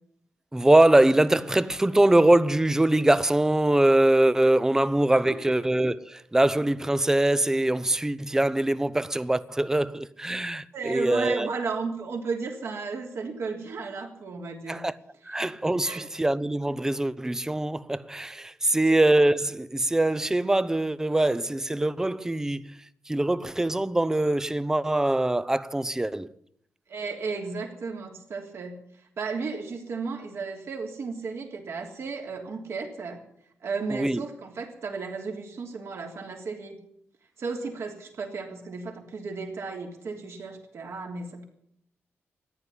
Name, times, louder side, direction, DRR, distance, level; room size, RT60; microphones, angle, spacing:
voice 1, 0.5-11.5 14.7-14.9 15.3-22.8 23.1-26.3 33.9-34.2, right 1 dB, 10° right, 0.6 m, -23 dB
voice 2, 10.7-14.8 15.3-15.5 15.8-16.1 26.9-28.8 29.2-33.2 33.6-36.8 37.4-41.5, right 4 dB, 65° right, 3.3 m, -34 dB
14.5 x 10.0 x 9.9 m
cardioid pair, 100°, 5 cm